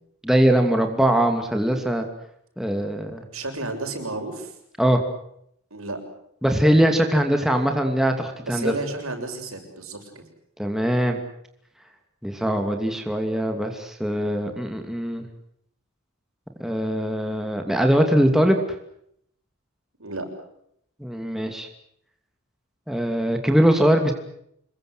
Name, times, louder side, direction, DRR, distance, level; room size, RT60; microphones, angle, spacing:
voice 1, 0.2-2.1 2.6-3.2 4.8-5.0 6.4-8.7 10.6-11.2 12.2-15.2 16.6-18.6 21.0-21.7 22.9-24.1, equal, ahead, 4 dB, 2.6 m, -21 dB
voice 2, 3.3-4.5 5.7-6.0 8.4-10.1 20.0-20.3, right 2 dB, 75° right, 5 dB, 7.0 m, -32 dB
27.5 x 22.0 x 8.0 m, 0.72 s
head